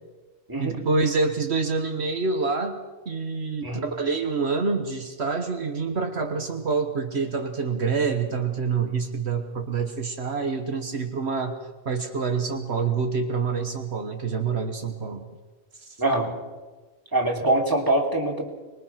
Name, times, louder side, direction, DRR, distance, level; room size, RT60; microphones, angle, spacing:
voice 1, 0.6-2.8 3.0-11.6 11.8-15.3 15.8-16.0, right 4 dB, 70° right, 5 dB, 1.6 m, -27 dB
voice 2, 16.0-16.3 17.1-18.5, right 2 dB, 20° right, -1 dB, 3.4 m, -24 dB
25.0 x 22.0 x 5.9 m, 1.3 s
omnidirectional pair, 1.1 m